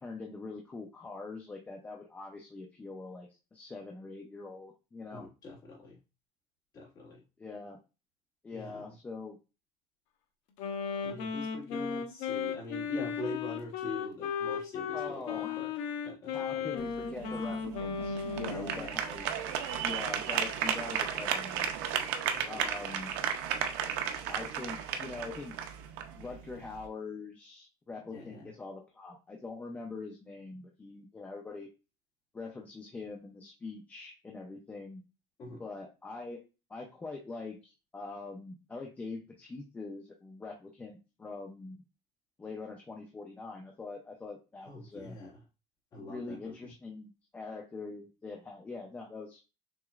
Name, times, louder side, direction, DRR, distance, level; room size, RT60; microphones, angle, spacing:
voice 1, 0.0-5.3 7.4-7.8 8.4-9.4 14.9-15.6 16.3-19.3 19.8-21.7 22.5-23.1 24.3-25.6 26.2-31.7 32.3-35.0 35.6-36.4 36.7-41.8 42.4-45.2 46.0-49.4, left 3 dB, 10° left, -1 dB, 0.5 m, -43 dB
voice 2, 5.2-6.0 6.7-7.2 8.5-8.8 11.0-15.7 16.0-16.8 18.4-18.9 22.3-22.6 28.1-28.5 35.4-35.6 44.6-45.4 45.9-46.7, left 2 dB, 25° left, -5 dB, 2.0 m, -43 dB
Wind instrument woodwind instrument, 10.6-18.8, left 7 dB, 55° left, 0.8 m, -36 dB
sound 1, 16.8-26.9, right 8 dB, 85° right, 0.6 m, -34 dB
6.1 x 3.0 x 2.4 m, 0.29 s
cardioid pair, 180°, 14 cm